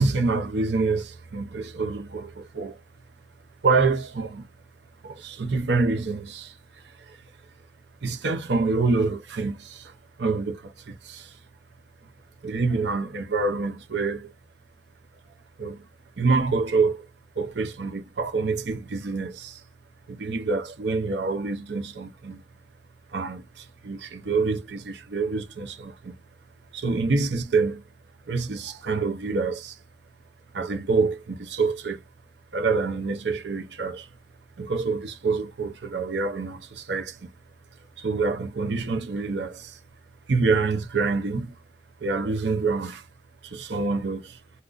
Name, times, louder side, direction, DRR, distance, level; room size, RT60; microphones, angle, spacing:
voice 1, 0.0-2.8 3.6-4.5 5.0-7.2 8.0-9.9 10.2-11.4 12.4-14.3 15.6-15.9 16.2-17.1 17.4-19.6 20.1-22.4 23.1-26.1 26.7-27.8 28.3-29.8 30.5-32.0 32.5-34.1 34.6-37.3 38.0-39.8 40.3-41.5 42.0-43.1 43.4-44.4, right 4 dB, 75° right, 0.6 m, -26 dB
2.5 x 2.1 x 3.6 m
head